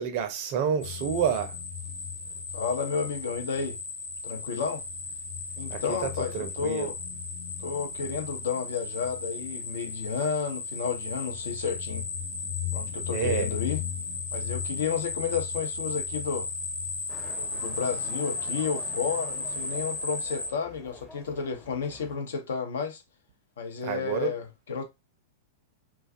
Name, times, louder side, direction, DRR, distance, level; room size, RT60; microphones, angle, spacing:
voice 1, 0.0-1.6 5.7-6.9 13.1-13.5 23.8-24.4, right 7 dB, 45° right, 0.5 m, -29 dB
sound 1, 0.8-20.5, left 4 dB, 85° left, 0.9 m, -35 dB
voice 2, 2.5-3.8 4.2-4.8 5.6-6.9 7.6-12.1 12.7-13.8 14.3-16.5 17.4-23.0 23.6-24.8, left 6 dB, 65° left, 0.6 m, -32 dB
Motorcycle, 17.1-22.2, equal, 5° left, 0.6 m, -49 dB
2.4 x 2.3 x 2.4 m
figure-of-eight pair, 95°, 0 cm